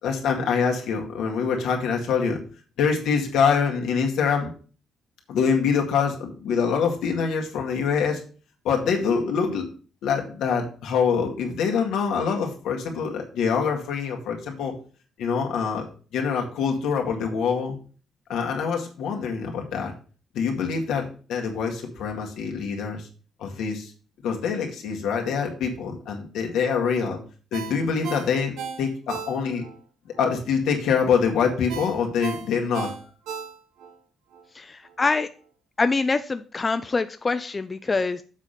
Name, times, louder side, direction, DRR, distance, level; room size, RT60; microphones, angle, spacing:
voice 1, 0.0-2.4 2.8-4.5 5.3-8.2 8.6-9.7 10.0-14.7 15.2-15.9 16.1-17.8 18.3-19.9 20.3-23.1 23.4-23.9 24.2-27.2 27.5-29.7 30.2-32.9, left 6 dB, 85° left, 1 dB, 2.0 m, -25 dB
Ringtone, 27.5-29.8 30.2-30.3 31.7-33.9 34.3-34.4, right 7 dB, 85° right, 0.9 m, -35 dB
voice 2, 34.6-35.3 35.8-38.2, left 3 dB, 30° left, 10 dB, 0.4 m, -25 dB
7.3 x 4.2 x 6.5 m, 0.39 s
cardioid pair, 90°, 0 cm